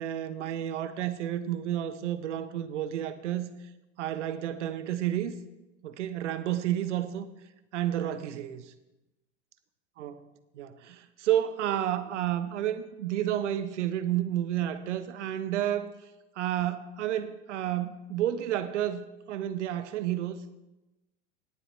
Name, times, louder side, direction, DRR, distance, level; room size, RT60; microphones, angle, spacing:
voice 1, 0.0-3.5 4.0-5.4 5.8-7.3 7.7-8.7 10.0-10.3 10.5-15.9 16.4-20.4, right 11 dB, 80° right, 0.9 m, -31 dB
17.5 x 7.9 x 3.2 m
hypercardioid pair, 105°, 36 cm